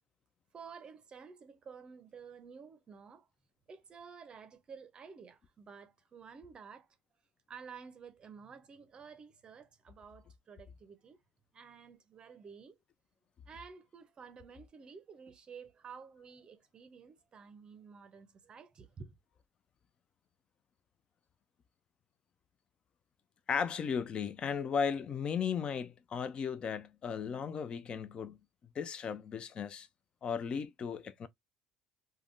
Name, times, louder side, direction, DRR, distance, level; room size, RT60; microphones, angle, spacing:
voice 1, 0.5-3.3 3.7-6.9 7.5-11.2 11.5-12.7 13.5-19.2, right 6 dB, 35° right, 0.6 m, -52 dB
voice 2, 23.5-28.4 28.8-29.9 30.2-31.3, left 6 dB, 40° left, 0.4 m, -35 dB
3.4 x 2.2 x 2.4 m
supercardioid pair, 100°, 3 cm